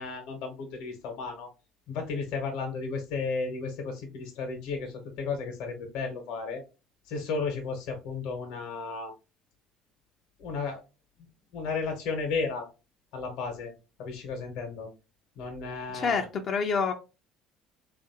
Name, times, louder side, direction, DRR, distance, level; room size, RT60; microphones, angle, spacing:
voice 1, 0.0-1.5 1.9-6.6 7.1-9.1 10.4-10.8 11.5-12.7 13.1-13.7 14.0-14.9 15.4-16.3, left 4 dB, 75° left, 0.9 m, -34 dB
voice 2, 15.9-16.9, left 5 dB, 45° left, 0.4 m, -27 dB
3.2 x 2.5 x 2.7 m
supercardioid pair, 95°, 0 cm